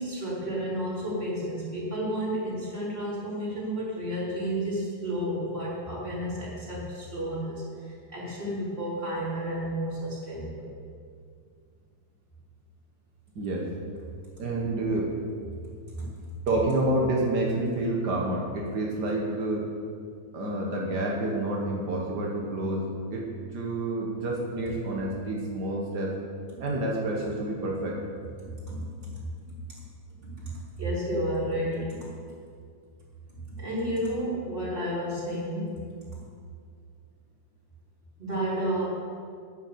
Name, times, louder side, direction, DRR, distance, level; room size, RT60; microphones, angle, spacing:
voice 1, 0.0-10.7 16.0-16.1 28.7-29.2 30.2-30.5 30.8-32.1 33.5-35.8 38.2-38.9, equal, 15° right, -7 dB, 3.6 m, -31 dB
voice 2, 13.3-13.7 14.4-15.1 16.5-19.7 20.3-26.2 26.6-28.0, right 1 dB, 70° right, -2 dB, 0.9 m, -28 dB
9.9 x 9.0 x 6.9 m, 2.2 s
omnidirectional pair, 3.9 m